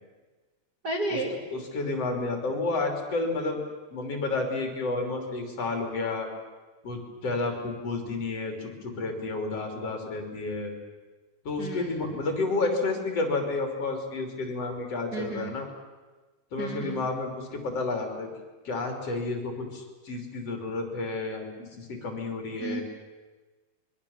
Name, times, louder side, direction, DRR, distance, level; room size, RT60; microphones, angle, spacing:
voice 1, 0.8-1.4 11.6-12.1 15.1-15.5 16.6-17.1 22.6-22.8, right 2 dB, 55° right, 2 dB, 1.0 m, -32 dB
voice 2, 1.5-3.6 3.9-6.3 6.8-10.7 11.4-15.7 16.5-18.3 18.6-22.8, left 3 dB, 35° left, 3 dB, 3.4 m, -31 dB
25.5 x 23.0 x 7.2 m, 1.3 s
omnidirectional pair, 5.5 m